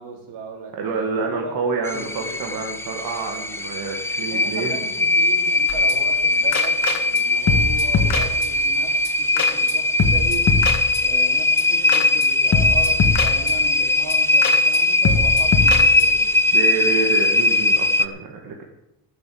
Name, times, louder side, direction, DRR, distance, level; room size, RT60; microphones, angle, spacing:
voice 1, 0.0-1.6 1.9-2.6 4.2-10.4 11.0-16.2, right 4 dB, 75° right, 0 dB, 4.3 m, -37 dB
voice 2, 0.8-4.8 16.5-18.6, right 4 dB, 55° right, 1 dB, 1.9 m, -27 dB
sound 1, 1.8-18.1, left 2 dB, 5° left, 0.6 m, -20 dB
sound 2, 5.7-6.2 6.5-7.2 7.5-8.8 9.1-9.2 9.4-9.7 10.0-11.3 11.6-11.7 11.9-12.3 12.5-13.8 14.1-14.2 14.4-14.8 15.1-16.3, left 5 dB, 40° left, 1.8 m, -23 dB
15.0 x 7.8 x 7.8 m, 0.88 s
cardioid pair, 145°, 42 cm